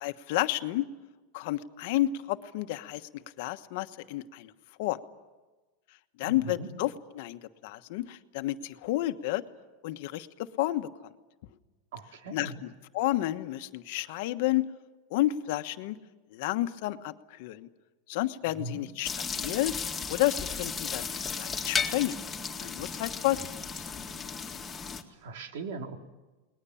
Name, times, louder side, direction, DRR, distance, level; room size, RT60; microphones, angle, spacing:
voice 1, 0.0-0.8 1.3-4.5 4.8-5.0 6.2-9.4 9.8-10.9 12.3-14.7 15.1-16.0 16.3-17.7 18.1-19.1 19.3-19.7 20.1-21.1 21.4-22.2 22.6-23.5 23.9-24.0, left 15 dB, 60° left, 9 dB, 1.3 m, -31 dB
voice 2, 6.2-6.7 11.9-12.6 18.6-18.8 25.1-26.0, right 3 dB, 80° right, 4 dB, 3.0 m, -39 dB
sound 1, 19.0-25.0, left 6 dB, 15° left, 2.1 m, -34 dB
30.0 x 20.5 x 7.2 m, 1.2 s
supercardioid pair, 150°, 0 cm